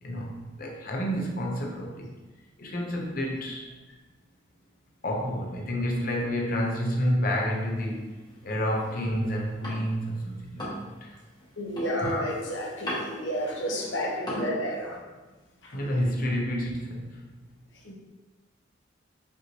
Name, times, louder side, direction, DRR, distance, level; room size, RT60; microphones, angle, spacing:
voice 1, 0.0-2.1 2.6-3.7 5.0-8.1 8.4-11.2 15.7-17.3, equal, 50° left, 0 dB, 0.7 m, -29 dB
sound 1, 7.4-10.1 10.4-14.5, equal, 25° left, 1.1 m, -39 dB
voice 2, 11.6-15.0 15.6-15.9 17.8-17.9, equal, 75° left, -3 dB, 1.0 m, -31 dB
5.2 x 3.0 x 2.9 m, 1.2 s
head